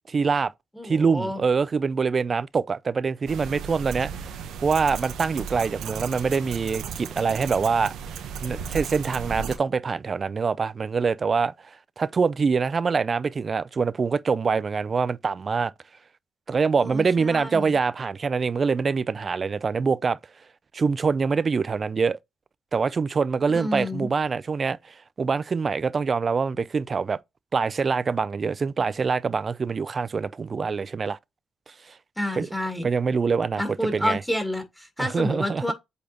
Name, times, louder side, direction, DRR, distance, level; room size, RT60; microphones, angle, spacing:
voice 1, 0.1-0.5 0.8-4.3 4.6-8.0 8.4-11.5 12.0-15.7 16.5-20.2 20.7-22.2 22.7-27.2 27.5-31.2 31.9-32.0 32.4-32.5 32.8-33.6 33.9-34.2 35.0-35.7, right 5 dB, 40° right, 0.5 m, -24 dB
voice 2, 0.8-1.4 16.8-17.8 23.5-24.1 32.2-32.9 33.6-35.7, left 1 dB, 5° left, 2.4 m, -29 dB
sound 1, 3.3-9.6, right 7 dB, 80° right, 1.0 m, -35 dB
8.4 x 4.2 x 2.9 m
cardioid pair, 90°, 0 cm